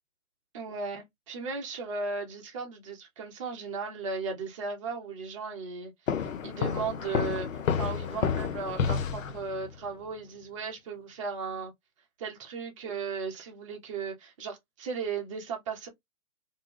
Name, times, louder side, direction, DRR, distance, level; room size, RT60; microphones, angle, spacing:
voice 1, 0.5-5.9 6.2-11.7 12.2-15.9, right 4 dB, 25° right, 0.6 m, -36 dB
sound 1, 6.1-9.8, left 7 dB, 65° left, 0.6 m, -30 dB
2.6 x 2.2 x 3.1 m
figure-of-eight pair, 125°, 42 cm